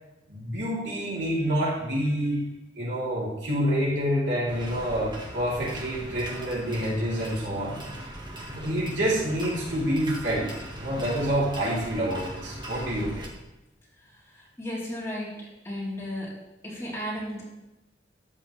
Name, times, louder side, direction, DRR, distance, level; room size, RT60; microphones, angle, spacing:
voice 1, 0.3-2.4 2.7-7.8 8.5-10.5 10.8-13.3, equal, 80° right, -6 dB, 4.0 m, -27 dB
sound 1, 4.5-13.3, right 1 dB, 25° right, 1.8 m, -39 dB
voice 2, 14.3-15.3 15.6-16.3 16.6-17.4, left 1 dB, 15° left, -7 dB, 4.2 m, -34 dB
13.0 x 9.8 x 3.5 m, 0.97 s
head